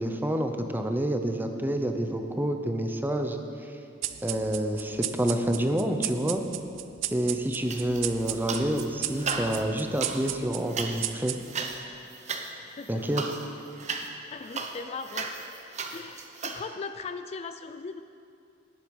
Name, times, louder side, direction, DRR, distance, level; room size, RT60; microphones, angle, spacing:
voice 1, 0.0-3.7 4.2-6.4 7.1-11.4 12.9-13.2, right 1 dB, 10° right, 5 dB, 0.8 m, -28 dB
sound 1, 4.0-11.8, right 13 dB, 80° right, 0.5 m, -36 dB
sound 2, 7.7-8.9 9.1-16.6, right 4 dB, 40° right, 0.9 m, -36 dB
voice 2, 12.6-12.9 14.3-15.3 15.9-18.0, left 4 dB, 35° left, 9 dB, 0.4 m, -38 dB
18.5 x 8.0 x 5.4 m, 2.5 s
head